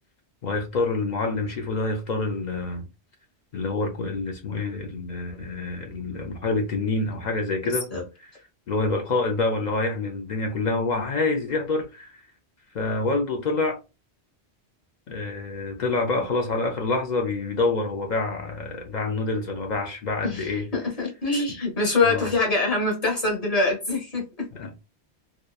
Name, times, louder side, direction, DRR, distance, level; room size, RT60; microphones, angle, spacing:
voice 1, 0.4-2.8 3.5-7.9 8.7-12.2 12.7-13.8 15.1-20.7 22.0-22.3 24.5-24.9, left 3 dB, 55° left, 0.5 m, -27 dB
voice 2, 7.6-8.0 20.2-24.5, left 3 dB, 35° left, 1.1 m, -25 dB
2.8 x 2.2 x 2.2 m
omnidirectional pair, 1.1 m